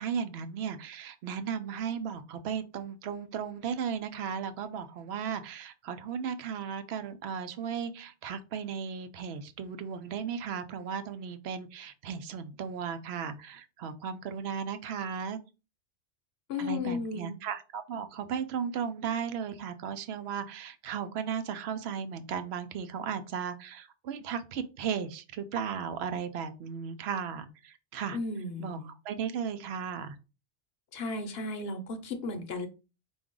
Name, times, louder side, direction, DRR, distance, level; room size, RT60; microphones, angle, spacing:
voice 1, 0.0-15.4 16.6-28.2 28.6-30.2, right 7 dB, 65° right, 10 dB, 0.8 m, -35 dB
voice 2, 16.5-17.4 28.1-28.9 30.9-32.7, left 3 dB, 60° left, 7 dB, 0.9 m, -34 dB
4.7 x 2.6 x 3.6 m, 0.31 s
omnidirectional pair, 1.2 m